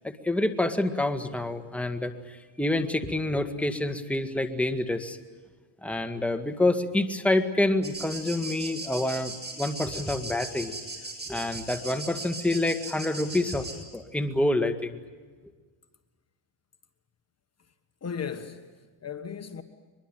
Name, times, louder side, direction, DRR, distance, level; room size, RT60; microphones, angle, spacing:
voice 1, 0.0-5.2 5.8-10.7 11.3-13.7 13.9-15.0, left 1 dB, 5° left, 1.9 m, -27 dB
sound 1, 7.8-13.7, right 3 dB, 20° right, 7.6 m, -38 dB
voice 2, 18.0-19.6, left 7 dB, 35° left, 1.5 m, -37 dB
23.5 x 22.0 x 9.2 m
cardioid pair, 100°, 44 cm